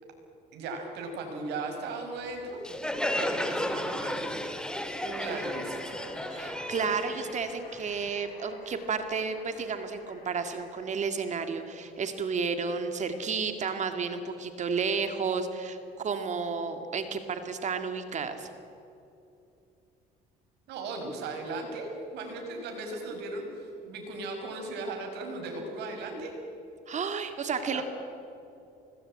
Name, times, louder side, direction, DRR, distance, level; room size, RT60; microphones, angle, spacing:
voice 1, 0.5-2.7 3.2-4.2 5.2-6.0 20.7-26.3 27.7-27.8, right 3 dB, 80° right, 3 dB, 6.0 m, -37 dB
Crowd, 2.6-8.1, left 1 dB, 5° left, 2.2 m, -33 dB
voice 2, 5.0-5.5 6.3-18.5 26.9-27.8, right 5 dB, 45° right, 7 dB, 2.1 m, -32 dB
sound 1, 5.3-10.9, left 2 dB, 60° left, 6.9 m, -49 dB
25.0 x 20.0 x 8.9 m, 2.8 s
cardioid pair, 110°, 17 cm